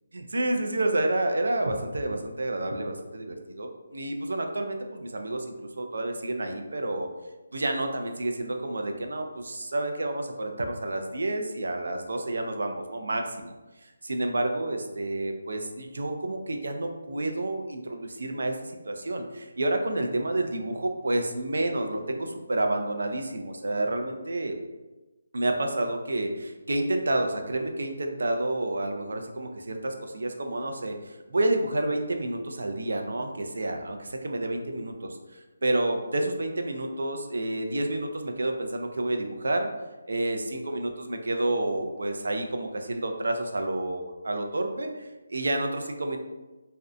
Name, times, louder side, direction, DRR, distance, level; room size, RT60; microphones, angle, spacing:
voice 1, 0.3-7.1 7.5-13.5 13.8-24.6 25.3-39.7 40.1-46.2, right 1 dB, 80° right, 4 dB, 0.4 m, -29 dB
2.6 x 2.1 x 2.4 m, 1.1 s
hypercardioid pair, 170°, 0 cm